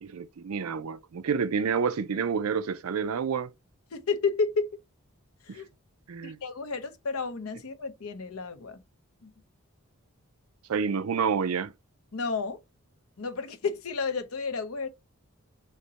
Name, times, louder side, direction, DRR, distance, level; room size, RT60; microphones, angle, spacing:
voice 1, 0.0-3.5 5.5-5.6 6.1-6.4 10.7-11.7, right 6 dB, 80° right, 0.5 m, -29 dB
voice 2, 3.9-4.7 5.5-5.7 6.2-8.8 9.2-9.3 12.1-12.6 13.2-14.9, left 4 dB, 75° left, 0.7 m, -31 dB
6.3 x 2.1 x 2.8 m
head